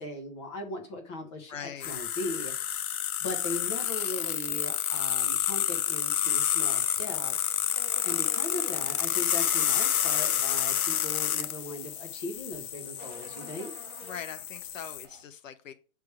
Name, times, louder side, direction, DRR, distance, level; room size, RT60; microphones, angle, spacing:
voice 1, 0.0-2.5 3.2-7.6 8.0-13.7, left 1 dB, 20° left, 1.0 m, -39 dB
voice 2, 1.5-2.0 14.0-15.7, left 8 dB, 65° left, 0.9 m, -41 dB
sound 1, 1.8-15.0, left 10 dB, 90° left, 0.7 m, -29 dB
sound 2, 3.7-15.2, right 2 dB, 30° right, 1.1 m, -53 dB
sound 3, 8.9-14.0, left 3 dB, 40° left, 2.9 m, -58 dB
6.0 x 3.6 x 4.8 m
hypercardioid pair, 165°, 42 cm